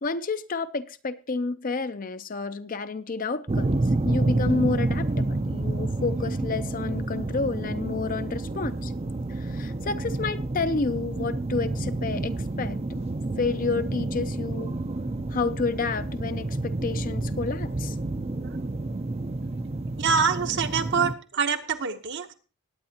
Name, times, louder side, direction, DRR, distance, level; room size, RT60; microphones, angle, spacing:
voice 1, 0.0-3.8 4.0-8.9 9.3-13.0 13.4-14.7 15.3-18.0, left 4 dB, 35° left, 12 dB, 0.5 m, -30 dB
sound 1, 3.5-21.1, right 2 dB, 30° right, 0.5 m, -29 dB
voice 2, 20.0-22.3, right 6 dB, 50° right, 8 dB, 0.9 m, -25 dB
19.0 x 8.8 x 2.8 m, 0.35 s
head